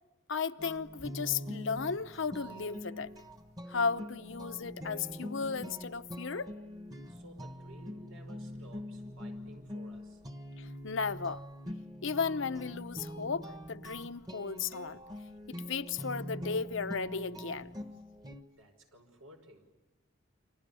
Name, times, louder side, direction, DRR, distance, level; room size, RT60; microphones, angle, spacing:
voice 1, 0.3-3.1 3.7-6.6 10.6-11.4 12.0-15.0 15.5-17.7, left 5 dB, 65° left, 0.8 m, -35 dB
sound 1, 0.6-18.4, equal, 20° right, 1.4 m, -44 dB
voice 2, 7.1-10.2 18.6-19.7, right 1 dB, 90° right, 5.3 m, -56 dB
29.5 x 26.0 x 7.0 m
head